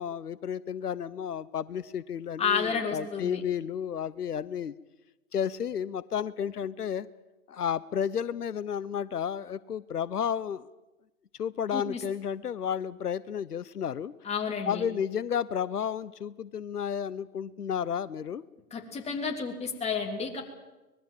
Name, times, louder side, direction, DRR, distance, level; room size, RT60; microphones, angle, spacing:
voice 1, 0.0-4.7 5.3-7.1 7.5-10.7 11.4-14.1 14.7-18.4, left 8 dB, 85° left, 18 dB, 0.8 m, -32 dB
voice 2, 2.4-3.4 11.7-12.0 14.2-14.9 18.7-20.4, left 6 dB, 15° left, 1 dB, 3.5 m, -31 dB
24.5 x 21.0 x 7.6 m, 1.1 s
hypercardioid pair, 125°, 45 cm